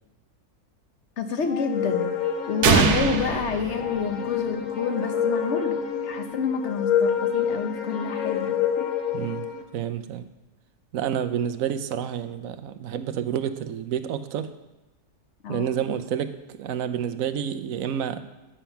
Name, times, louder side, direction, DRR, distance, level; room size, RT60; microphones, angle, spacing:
voice 1, 1.2-2.1 2.5-8.8 15.4-15.8, left 5 dB, 50° left, 6 dB, 1.2 m, -29 dB
sound 1, 1.5-9.6, left 8 dB, 70° left, 1.4 m, -28 dB
Lightening bang Impact, 2.6-4.5, right 5 dB, 90° right, 1.4 m, -23 dB
voice 2, 9.1-10.3 10.9-14.5 15.5-18.2, right 9 dB, 70° right, 11 dB, 1.0 m, -29 dB
10.0 x 7.2 x 5.7 m, 1.0 s
omnidirectional pair, 1.6 m